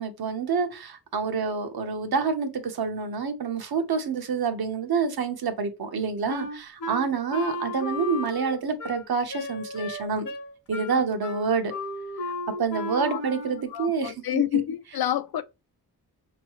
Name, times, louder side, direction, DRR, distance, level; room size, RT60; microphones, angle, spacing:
voice 1, 0.0-10.3 10.7-11.7 12.6-14.4, right 5 dB, 75° right, 1.0 m, -27 dB
Wind instrument woodwind instrument, 6.3-13.7, left 1 dB, 55° left, 0.9 m, -34 dB
voice 2, 13.7-15.4, left 12 dB, 75° left, 0.5 m, -28 dB
5.5 x 3.0 x 3.0 m
wide cardioid pair, 155°, 37 cm